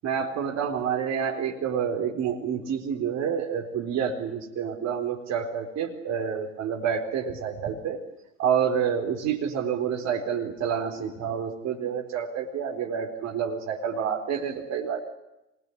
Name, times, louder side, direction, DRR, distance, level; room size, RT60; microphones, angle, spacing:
voice 1, 0.0-8.0 8.4-15.0, right 7 dB, 45° right, 1 dB, 4.3 m, -28 dB
25.0 x 20.5 x 10.0 m, 0.92 s
hypercardioid pair, 80°, 38 cm